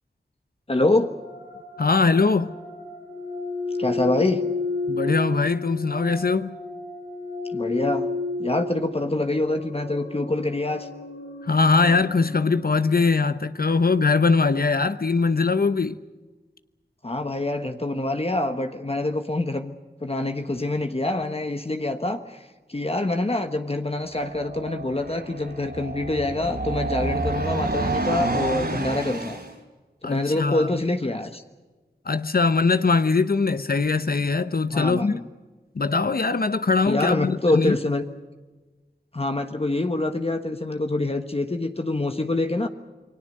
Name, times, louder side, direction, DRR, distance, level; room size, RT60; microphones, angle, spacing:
voice 1, 0.7-1.1 3.8-4.4 7.5-8.1 8.4-10.9 17.0-19.7 20.0-29.4 30.0-31.4 34.7-35.2 36.8-38.1 39.1-42.7, left 2 dB, 35° left, 1.3 m, -25 dB
sound 1, 1.1-12.6, left 3 dB, 85° left, 6.1 m, -32 dB
voice 2, 1.8-2.5 4.9-6.6 11.4-16.0 30.0-30.7 32.1-35.2 35.7-37.7, left 4 dB, 60° left, 0.9 m, -21 dB
sound 2, 24.1-29.5, right 2 dB, 65° right, 4.3 m, -29 dB
28.5 x 21.0 x 6.6 m
wide cardioid pair, 50°, 18 cm